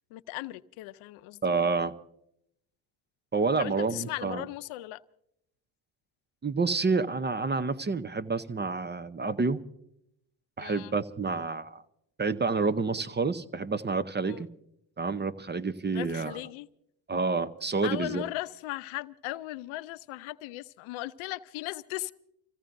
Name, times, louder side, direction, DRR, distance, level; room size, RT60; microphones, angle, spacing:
voice 1, 0.1-1.5 3.6-5.0 10.6-10.9 14.3-14.4 15.8-16.7 17.8-22.1, left 17 dB, 70° left, 15 dB, 0.7 m, -37 dB
voice 2, 1.4-1.9 3.3-4.5 6.4-9.6 10.6-11.8 12.2-14.5 15.0-16.4 17.1-18.2, right 4 dB, 20° right, 12 dB, 0.7 m, -28 dB
29.5 x 15.5 x 2.6 m, 0.76 s
supercardioid pair, 65°, 50 cm